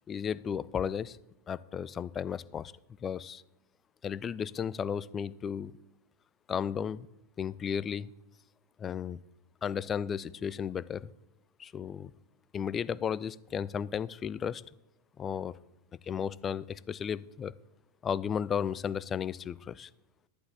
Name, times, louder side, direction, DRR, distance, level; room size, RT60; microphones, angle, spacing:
voice 1, 0.1-1.2 1.5-2.7 3.0-3.4 4.0-5.7 6.5-7.1 7.4-8.1 8.8-9.2 9.6-11.1 11.6-12.1 12.5-14.6 15.2-15.5 16.0-17.5 18.0-19.9, left 7 dB, 25° left, 19 dB, 0.3 m, -34 dB
12.0 x 11.0 x 3.3 m, 0.92 s
figure-of-eight pair, 90°, 0 cm